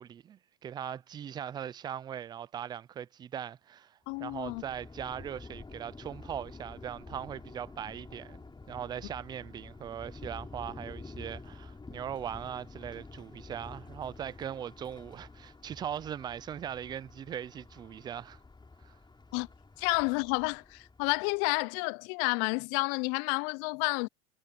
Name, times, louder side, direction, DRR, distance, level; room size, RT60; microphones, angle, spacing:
voice 1, 0.0-18.4 18.8-19.0, right 9 dB, 10° right, 0.3 m, -40 dB
voice 2, 4.1-4.6 19.3-19.5 19.8-24.1, left 32 dB, 40° left, 0.6 m, -30 dB
Thunder, 4.1-21.5, left 3 dB, 10° left, 6.1 m, -49 dB
hypercardioid pair, 105°, 44 cm